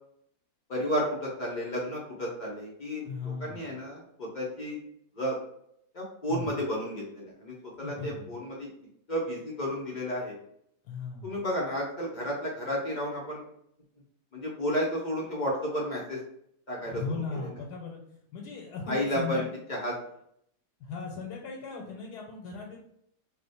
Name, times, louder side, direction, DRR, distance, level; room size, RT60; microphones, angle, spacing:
voice 1, 0.7-4.8 5.2-5.4 5.9-8.7 9.1-10.3 11.2-13.4 14.3-16.2 16.7-17.0 17.4-17.5 18.9-20.0, equal, 55° left, -4 dB, 0.5 m, -32 dB
voice 2, 3.1-3.7 6.3-6.5 7.8-8.3 10.8-11.4 16.8-18.0 18.3-19.5 20.8-22.8, left 4 dB, 85° left, -1 dB, 1.2 m, -37 dB
2.9 x 2.1 x 4.0 m, 0.72 s
omnidirectional pair, 1.7 m